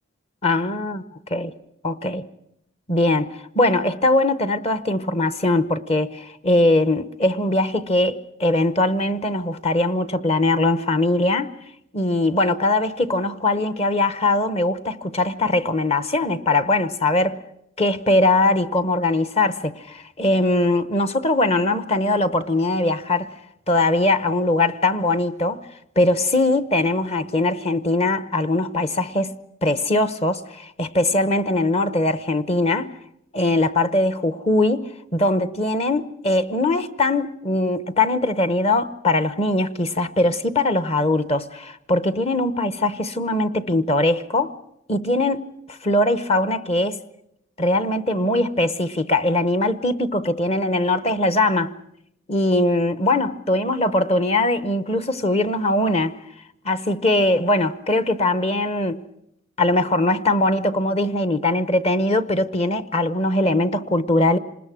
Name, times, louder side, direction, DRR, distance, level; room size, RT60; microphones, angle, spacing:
voice 1, 0.4-1.0 1.3-1.5 1.8-2.3 2.9-11.5 11.9-17.4 17.8-23.3 23.7-25.6 26.0-32.9 33.3-44.5 44.9-47.0 47.6-51.7 52.3-56.2 56.6-59.0 59.6-64.4, left 2 dB, 30° left, 0.9 m, -21 dB
27.0 x 20.0 x 6.2 m
head